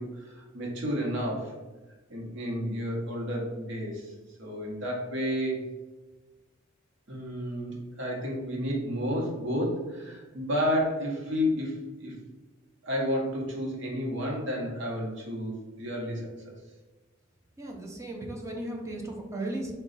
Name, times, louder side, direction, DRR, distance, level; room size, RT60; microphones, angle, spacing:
voice 1, 0.0-1.5 2.1-4.1 4.4-5.6 7.1-12.1 12.8-16.3, equal, 65° right, -2 dB, 1.0 m, -31 dB
voice 2, 17.6-19.7, right 1 dB, 15° right, 0 dB, 0.6 m, -36 dB
4.0 x 2.3 x 4.0 m, 1.2 s
head